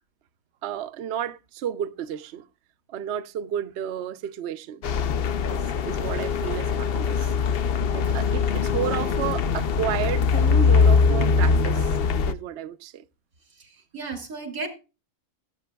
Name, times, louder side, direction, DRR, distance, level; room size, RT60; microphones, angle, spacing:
voice 1, 0.6-2.4 2.9-4.8 5.5-7.3 7.9-11.9 12.3-13.0, right 10 dB, 60° right, 0.8 m, -32 dB
sound 1, 4.8-12.3, left 5 dB, 55° left, 0.7 m, -22 dB
voice 2, 13.6-14.7, right 3 dB, 90° right, 3.2 m, -35 dB
16.5 x 8.9 x 2.3 m
omnidirectional pair, 1.4 m